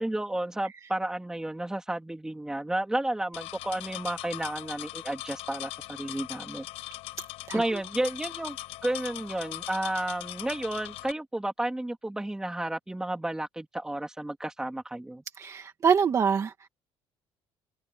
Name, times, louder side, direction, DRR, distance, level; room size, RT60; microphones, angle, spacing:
voice 1, 0.0-6.7 7.5-15.2, right 1 dB, 5° right, 3.4 m, -32 dB
sound 1, 3.3-11.1, left 18 dB, 80° left, 5.8 m, -40 dB
voice 2, 15.4-16.5, right 7 dB, 30° right, 1.7 m, -24 dB
cardioid pair, 155°, 10 cm